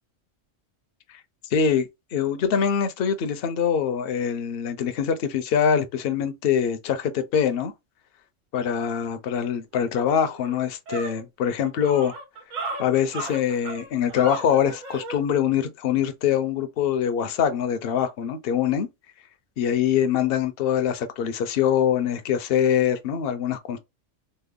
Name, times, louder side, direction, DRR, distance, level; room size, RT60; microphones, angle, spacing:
voice 1, 1.5-7.7 8.5-12.1 12.8-18.9 19.6-23.8, left 8 dB, 60° left, 0.7 m, -24 dB
sound 1, 9.7-9.8 10.2-15.2, right 3 dB, 90° right, 1.4 m, -35 dB
3.3 x 2.0 x 3.5 m
omnidirectional pair, 1.3 m